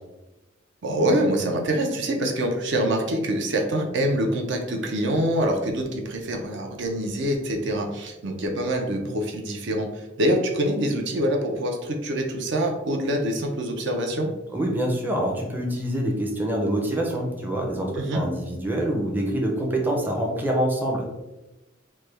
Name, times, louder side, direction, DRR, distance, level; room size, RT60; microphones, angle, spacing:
voice 1, 0.8-14.3 17.9-18.2, right 1 dB, 65° right, 2 dB, 0.5 m, -25 dB
voice 2, 14.5-21.1, right 1 dB, 10° right, -1 dB, 0.5 m, -26 dB
3.2 x 2.1 x 3.3 m, 1.0 s
head